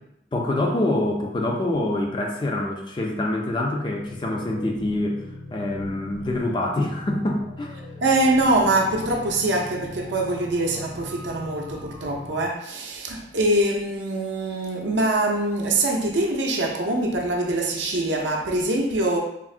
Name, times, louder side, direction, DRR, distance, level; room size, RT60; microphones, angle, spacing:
voice 1, 0.3-5.2 5.5-7.8, left 1 dB, 25° left, 1 dB, 0.3 m, -25 dB
sound 1, 3.9-12.4, left 1 dB, 60° left, 0.6 m, -40 dB
voice 2, 8.0-19.2, right 2 dB, 80° right, 1 dB, 0.5 m, -23 dB
3.6 x 2.0 x 2.4 m, 0.84 s
head